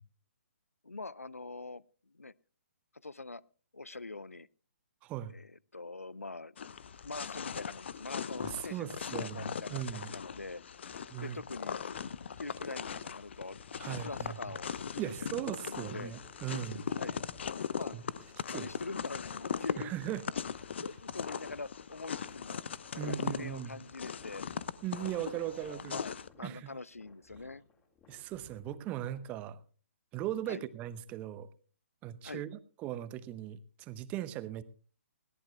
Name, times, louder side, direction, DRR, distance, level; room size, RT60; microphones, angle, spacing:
voice 1, 0.8-1.8 2.1-2.3 3.0-3.4 3.7-4.5 5.3-6.5 7.0-11.8 12.4-14.7 15.0-16.1 16.9-17.2 17.7-18.0 18.5-19.9 20.8-22.6 22.9-24.5 25.4-27.7 30.5-30.6 32.2-32.4, left 3 dB, 85° left, 23 dB, 0.6 m, -44 dB
voice 2, 5.0-5.3 8.4-10.1 11.1-11.4 13.8-14.4 15.0-16.9 17.9-18.0 18.5-18.7 19.8-20.2 23.0-23.8 24.8-26.0 26.4-26.7 28.1-29.6 30.1-31.5 32.0-34.6, right 12 dB, 20° right, 15 dB, 0.8 m, -38 dB
sound 1, 6.6-26.3, left 7 dB, 50° left, 0.8 m, -40 dB
sound 2, 10.9-29.6, left 4 dB, 15° left, 4.5 m, -62 dB
20.0 x 17.5 x 2.2 m, 0.41 s
figure-of-eight pair, 135°, 8 cm